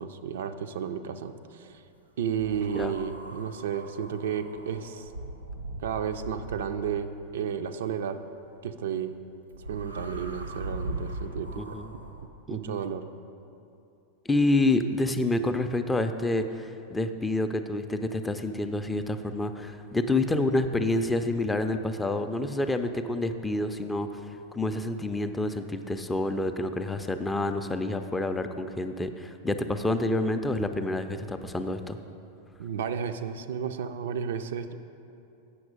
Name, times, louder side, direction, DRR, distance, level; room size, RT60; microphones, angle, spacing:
voice 1, 0.0-1.8 2.2-5.1 5.8-8.2 8.6-9.2 9.7-11.8 12.5-13.1 32.6-34.7, right 7 dB, 60° right, 9 dB, 0.4 m, -32 dB
sound 1, 2.4-7.1 9.5-12.3, right 1 dB, 85° right, 0.7 m, -39 dB
voice 2, 11.6-11.9 12.5-12.8 14.3-32.0, left 2 dB, 10° left, 8 dB, 0.4 m, -28 dB
8.4 x 6.0 x 5.2 m, 2.7 s
figure-of-eight pair, 90°, 0 cm